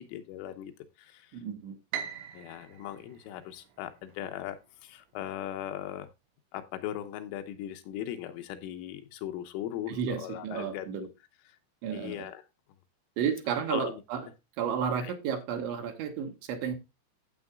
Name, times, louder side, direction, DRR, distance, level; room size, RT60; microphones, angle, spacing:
voice 1, 0.0-1.4 2.3-6.1 6.5-11.1 11.5-11.6 11.9-12.4 13.7-14.0 15.0-15.1, left 12 dB, 80° left, 7 dB, 3.3 m, -39 dB
voice 2, 1.3-1.8 9.9-11.1 11.8-12.3 13.2-14.3 14.6-16.8, right 7 dB, 70° right, 4 dB, 3.4 m, -32 dB
Piano, 1.9-4.2, right 9 dB, 90° right, 3.6 m, -41 dB
13.0 x 8.0 x 2.3 m, 0.24 s
omnidirectional pair, 5.9 m